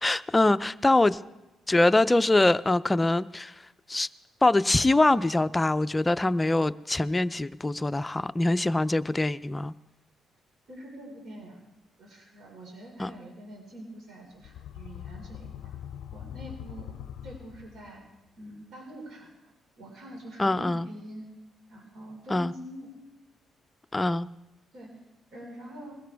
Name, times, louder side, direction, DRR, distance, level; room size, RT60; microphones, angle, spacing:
voice 1, 0.0-1.2 1.7-3.5 3.9-4.1 4.4-9.7 13.0-13.1 20.4-20.9 22.3-22.5 23.9-24.3, left 2 dB, 15° left, 13 dB, 0.5 m, -23 dB
voice 2, 10.7-11.6 12.0-15.7 16.1-17.0 17.2-18.0 18.4-19.3 19.8-21.3 21.7-22.9 24.7-24.9 25.3-26.0, equal, 70° right, -1 dB, 4.8 m, -44 dB
sound 1, 14.3-18.1, left 10 dB, 80° left, 0.4 m, -42 dB
21.5 x 16.5 x 3.5 m, 1.0 s
cardioid pair, 90°, 0 cm